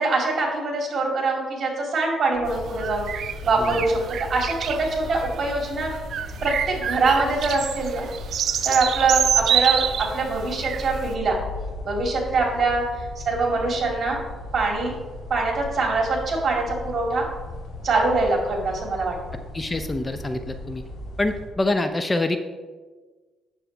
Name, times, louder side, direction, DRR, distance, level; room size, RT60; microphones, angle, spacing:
voice 1, 0.0-3.1 3.4-4.0 4.3-5.9 6.4-8.1 8.6-11.4 11.8-14.2 14.5-14.9 15.3-17.3 17.8-19.2, right 3 dB, 45° right, 0 dB, 2.4 m, -23 dB
sound 1, 2.3-21.5, left 2 dB, 90° left, 2.3 m, -37 dB
sound 2, 2.5-11.1, right 9 dB, 65° right, 0.4 m, -27 dB
voice 2, 19.5-20.8 21.2-22.4, left 2 dB, 20° left, 8 dB, 0.5 m, -25 dB
8.9 x 7.3 x 3.4 m, 1.4 s
cardioid pair, 90°, 0 cm